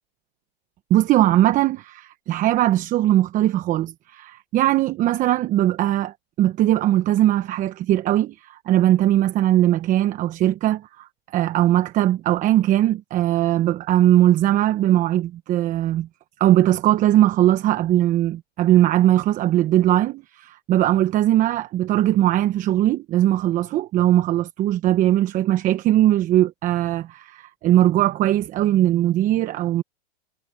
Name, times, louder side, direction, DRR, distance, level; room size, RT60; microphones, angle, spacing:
voice 1, 0.9-16.1 16.4-29.8, right 13 dB, 25° right, 1.0 m, -20 dB
hypercardioid pair, 135°, 30 cm